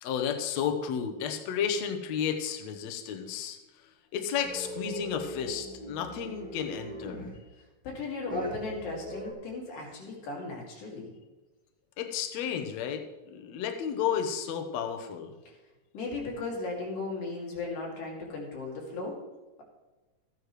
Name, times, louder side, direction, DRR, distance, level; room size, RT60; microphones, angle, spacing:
voice 1, 0.0-3.6 4.1-7.3 12.0-15.3, left 8 dB, 65° left, 5 dB, 1.9 m, -32 dB
sound 1, 4.4-7.4 8.3-9.3, equal, 5° left, 0.7 m, -40 dB
voice 2, 7.8-11.1 15.9-19.2, left 3 dB, 90° left, -2 dB, 4.3 m, -36 dB
14.5 x 9.9 x 3.2 m, 1.1 s
omnidirectional pair, 3.8 m